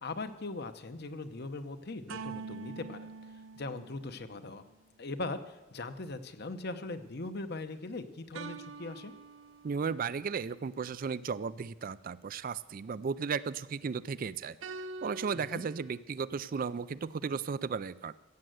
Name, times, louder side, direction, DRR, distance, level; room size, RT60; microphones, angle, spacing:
voice 1, 0.0-3.1 3.6-4.6 5.0-9.1 15.3-15.6, left 2 dB, 55° left, 10 dB, 0.9 m, -40 dB
sound 1, 2.1-4.6 8.3-10.2 14.6-16.0, right 4 dB, 80° right, 0.7 m, -45 dB
voice 2, 9.6-14.6 15.0-18.1, right 5 dB, 45° right, 16 dB, 0.4 m, -35 dB
15.5 x 7.7 x 7.8 m, 1.1 s
head